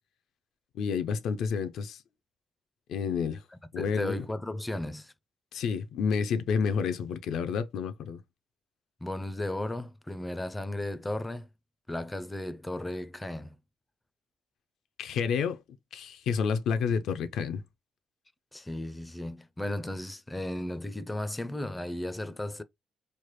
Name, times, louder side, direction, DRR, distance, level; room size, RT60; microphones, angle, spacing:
voice 1, 0.7-2.0 2.9-3.4 3.7-4.2 5.5-8.2 15.0-15.6 15.9-17.6, left 6 dB, 75° left, 0.4 m, -29 dB
voice 2, 3.8-5.1 9.0-11.5 11.9-13.6 18.5-22.6, left 1 dB, 15° left, 0.4 m, -35 dB
3.2 x 2.0 x 3.0 m
cardioid pair, 90°, 0 cm